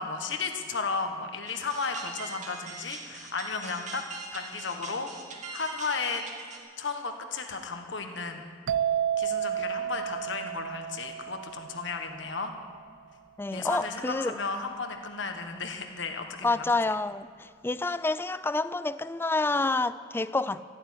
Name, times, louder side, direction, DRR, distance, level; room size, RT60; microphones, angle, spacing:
voice 1, 0.0-4.0 4.3-5.1 5.5-6.2 6.8-8.5 9.2-12.5 13.5-16.6, left 4 dB, 65° left, 1.5 m, -34 dB
sound 1, 1.5-6.6, right 4 dB, 40° right, 1.8 m, -42 dB
sound 2, 8.7-12.3, right 9 dB, 75° right, 0.4 m, -31 dB
voice 2, 13.4-14.3 16.4-20.6, left 3 dB, 10° left, 0.3 m, -28 dB
14.0 x 9.0 x 9.7 m
head